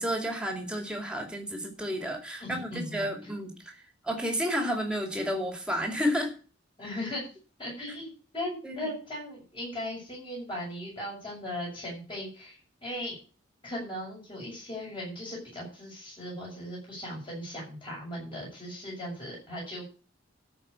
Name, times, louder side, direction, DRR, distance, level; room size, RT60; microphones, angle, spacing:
voice 1, 0.0-3.7 4.0-6.3 8.6-8.9, equal, 5° right, 3 dB, 2.4 m, -31 dB
voice 2, 2.4-3.1 6.8-7.2 7.6-13.2 13.6-19.8, left 1 dB, 25° left, -4 dB, 6.8 m, -38 dB
13.0 x 5.2 x 8.3 m, 0.36 s
head